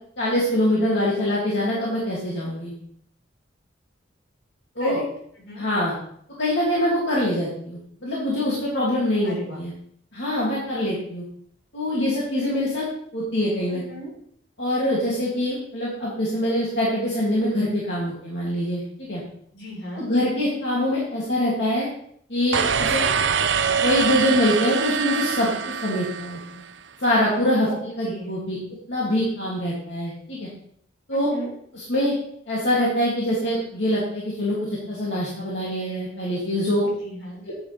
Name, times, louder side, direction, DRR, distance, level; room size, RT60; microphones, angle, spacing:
voice 1, 0.2-2.7 4.8-5.0 5.6-5.9 6.4-9.7 10.1-11.2 11.7-12.8 13.1-13.8 14.6-19.2 20.0-21.9 22.3-23.1 23.8-26.4 27.0-27.7 28.0-28.6 28.9-30.5 31.1-31.3 31.7-32.1 32.5-36.9 37.5-37.6, left 1 dB, 70° left, -7 dB, 2.7 m, -24 dB
voice 2, 9.2-9.6 13.7-14.1 19.5-20.1 27.7-27.8 28.0-28.3 31.1-31.5 36.8-37.4, equal, 85° left, -2 dB, 4.1 m, -36 dB
sound 1, 22.5-26.7, right 7 dB, 75° right, 0.6 m, -24 dB
10.5 x 8.8 x 3.5 m, 0.65 s
head